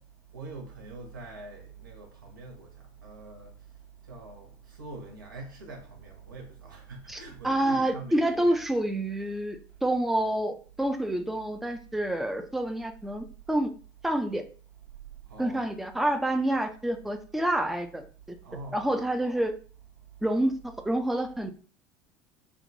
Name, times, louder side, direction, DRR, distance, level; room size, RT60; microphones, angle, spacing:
voice 1, 0.3-2.7 3.0-3.5 4.1-8.6 15.3-15.7 18.4-19.0, right 2 dB, 75° right, 0.8 m, -44 dB
voice 2, 7.1-13.7 14.0-14.4 15.4-18.4 18.7-19.5 20.2-20.5 20.8-21.5, right 1 dB, ahead, 0.4 m, -28 dB
3.7 x 2.3 x 2.5 m
figure-of-eight pair, 65°, 11 cm